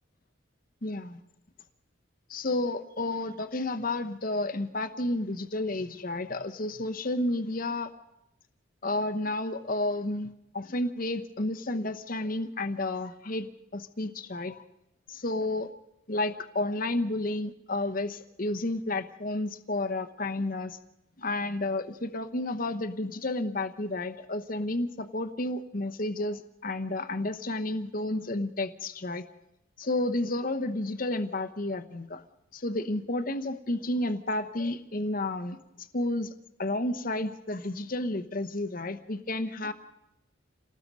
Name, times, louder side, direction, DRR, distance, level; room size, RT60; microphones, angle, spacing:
voice 1, 0.8-1.2 2.3-7.9 8.8-13.5 13.7-14.6 15.1-15.7 16.1-20.8 21.2-29.2 29.8-32.2 32.5-36.3 36.6-39.7, left 2 dB, 40° left, 9 dB, 1.0 m, -31 dB
28.0 x 19.0 x 5.4 m, 0.87 s
head